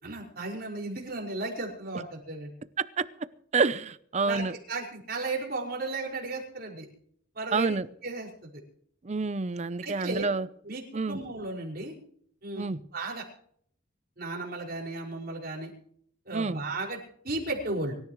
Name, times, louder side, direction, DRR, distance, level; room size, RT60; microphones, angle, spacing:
voice 1, 0.0-2.5 4.2-6.9 7.3-7.8 8.0-8.5 9.8-10.3 10.6-11.9 12.4-13.2 14.2-15.7 16.3-17.0 17.2-17.9, right 2 dB, 50° right, -1 dB, 5.5 m, -35 dB
voice 2, 3.5-4.5 7.5-7.9 9.0-10.5 10.9-11.2 12.6-12.8 16.3-16.6, right 4 dB, 35° right, 15 dB, 0.6 m, -28 dB
24.5 x 14.0 x 3.1 m, 0.62 s
head